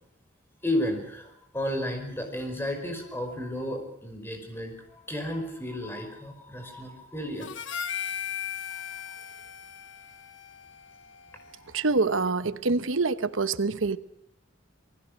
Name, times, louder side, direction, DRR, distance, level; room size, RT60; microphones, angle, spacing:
voice 1, 0.6-7.5 11.7-11.8, left 1 dB, 10° left, 4 dB, 5.3 m, -33 dB
Harmonica, 7.4-11.9, left 8 dB, 70° left, 1.2 m, -38 dB
voice 2, 11.7-14.0, right 3 dB, 85° right, 13 dB, 1.0 m, -26 dB
27.5 x 20.0 x 6.5 m, 0.73 s
head